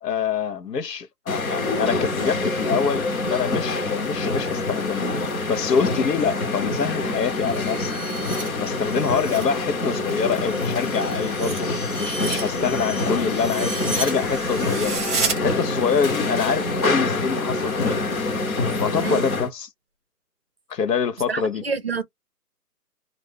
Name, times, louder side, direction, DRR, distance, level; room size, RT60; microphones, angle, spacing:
voice 1, 0.0-5.1 5.5-7.9 8.6-11.7 12.0-15.0 15.4-18.1 18.8-19.7 20.7-21.6, left 6 dB, 85° left, 0.8 m, -25 dB
sound 1, 1.3-19.5, left 2 dB, 60° left, 1.0 m, -26 dB
sound 2, 7.1-9.5 9.9-15.4, right 4 dB, 10° right, 0.9 m, -32 dB
voice 2, 21.3-22.0, right 5 dB, 40° right, 0.5 m, -28 dB
2.4 x 2.2 x 3.4 m
hypercardioid pair, 165°, 47 cm